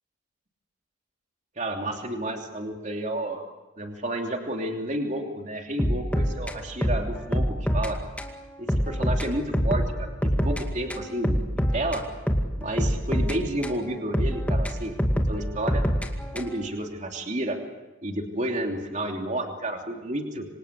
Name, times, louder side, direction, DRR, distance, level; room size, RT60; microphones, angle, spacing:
voice 1, 1.6-3.4 3.8-8.0 8.6-12.1 12.6-15.9 16.3-17.6 18.0-20.5, right 1 dB, 35° right, 3 dB, 3.0 m, -31 dB
sound 1, 5.8-8.3 8.7-10.6 10.9-13.8 14.1-16.7, equal, 5° left, 2.2 m, -25 dB
27.5 x 25.5 x 8.4 m, 1.1 s
head